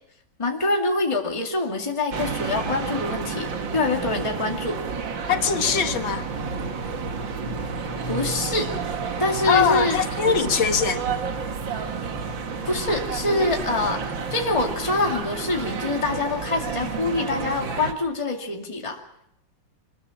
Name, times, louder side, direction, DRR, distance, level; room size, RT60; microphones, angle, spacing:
voice 1, 0.4-4.8 8.1-8.7 9.2-10.0 10.3-10.5 12.7-19.0, left 2 dB, 15° left, 2.3 m, -25 dB
sound 1, 2.1-17.9, right 5 dB, 75° right, 2.4 m, -30 dB
voice 2, 5.3-6.3 9.5-11.0, left 7 dB, 80° left, 2.3 m, -22 dB
25.5 x 20.0 x 7.2 m
omnidirectional pair, 2.1 m